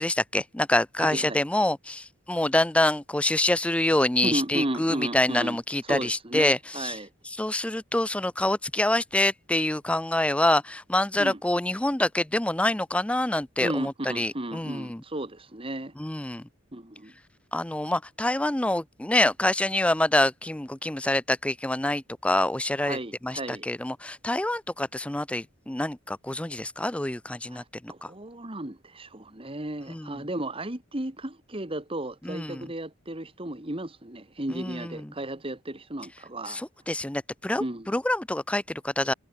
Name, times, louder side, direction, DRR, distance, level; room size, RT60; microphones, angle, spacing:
voice 1, 0.0-7.0 7.3-15.0 16.0-16.5 17.5-23.0 23.2-28.1 29.9-30.2 32.2-32.6 34.5-35.1 36.5-39.1, left 1 dB, 5° left, 0.4 m, -26 dB
voice 2, 1.0-1.4 4.2-5.6 5.9-7.1 11.2-11.4 13.6-15.9 16.7-17.1 22.8-23.7 27.5-36.6 37.6-38.0, right 1 dB, 25° right, 2.0 m, -34 dB
head